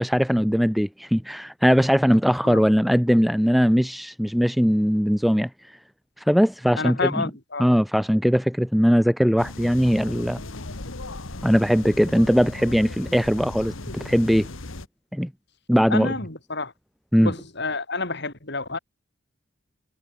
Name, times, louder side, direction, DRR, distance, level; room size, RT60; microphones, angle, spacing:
voice 1, 0.0-5.5 6.3-7.2 7.6-10.4 11.4-14.5 15.1-15.3 15.7-16.1 17.1-17.3, equal, ahead, 0.5 m, -20 dB
voice 2, 6.8-7.6 15.9-16.7 17.2-18.8, left 3 dB, 55° left, 4.9 m, -29 dB
sound 1, 9.4-14.9, left 2 dB, 80° left, 1.8 m, -37 dB
head